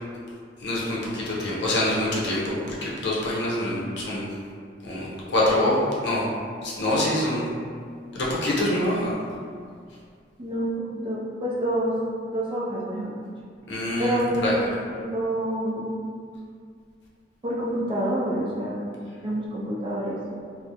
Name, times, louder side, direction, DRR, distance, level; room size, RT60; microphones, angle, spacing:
voice 1, 0.6-4.4 4.8-6.3 6.6-7.5 8.1-9.2 13.7-14.7, left 1 dB, 65° left, -6 dB, 0.6 m, -25 dB
voice 2, 10.4-12.0 12.3-13.2 14.0-15.9 17.4-20.4, right 1 dB, 25° right, -6 dB, 0.4 m, -28 dB
2.3 x 2.0 x 2.8 m, 2.2 s
head